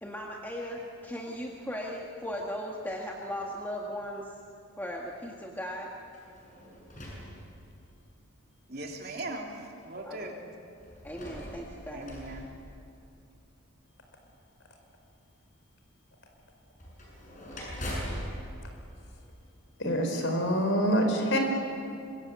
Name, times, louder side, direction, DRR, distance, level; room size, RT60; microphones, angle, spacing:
voice 1, 0.0-4.3 4.8-5.9 10.0-10.3 11.0-12.1, equal, 10° left, -2 dB, 1.8 m, -37 dB
sound 1, 6.1-8.1 8.9-9.0 10.8-13.4 16.8-19.8, equal, 35° left, 7.7 m, -41 dB
voice 2, 8.7-9.5 9.8-10.5 11.9-12.5, right 2 dB, 45° right, 0 dB, 3.4 m, -39 dB
voice 3, 19.8-21.4, equal, 65° left, 3 dB, 5.0 m, -26 dB
26.0 x 22.5 x 8.3 m, 2.5 s
head